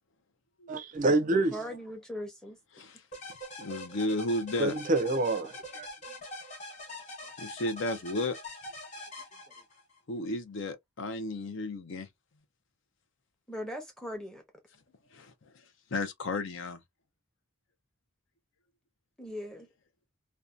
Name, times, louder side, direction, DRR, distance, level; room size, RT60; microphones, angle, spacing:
voice 1, 0.7-1.6 4.6-5.9, right 2 dB, 35° right, 0.4 m, -27 dB
voice 2, 1.3-2.6 13.5-14.4 19.2-19.7, equal, 5° left, 0.7 m, -39 dB
sound 1, 3.1-10.0, left 1 dB, 35° left, 0.9 m, -43 dB
voice 3, 3.6-4.7 7.4-8.4 10.1-12.1 15.1-15.3 15.9-16.8, left 2 dB, 55° left, 0.5 m, -33 dB
2.6 x 2.1 x 2.4 m
head